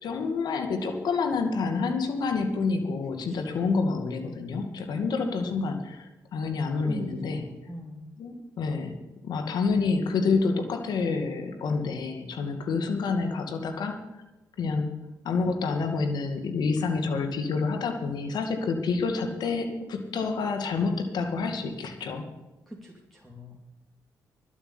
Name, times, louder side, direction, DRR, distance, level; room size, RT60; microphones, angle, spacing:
voice 1, 0.0-7.4 8.2-9.0 9.2-14.0 14.6-14.9 15.2-22.3, left 4 dB, 70° left, 6 dB, 2.3 m, -28 dB
voice 2, 3.3-3.7 6.7-8.1 22.7-23.7, right 1 dB, 5° left, -1 dB, 2.8 m, -41 dB
12.0 x 8.5 x 9.7 m, 1.0 s
supercardioid pair, 60°, 7 cm